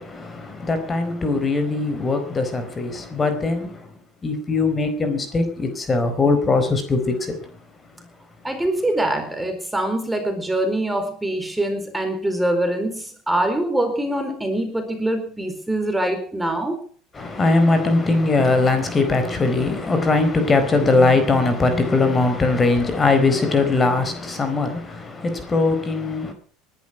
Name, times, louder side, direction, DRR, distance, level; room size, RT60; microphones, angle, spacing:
voice 1, 0.0-3.9 4.2-7.4 17.2-26.3, left 3 dB, 20° left, 4.3 m, -20 dB
voice 2, 8.4-16.8, right 1 dB, 5° right, 4.3 m, -24 dB
19.5 x 11.5 x 6.0 m
supercardioid pair, 105°, 0 cm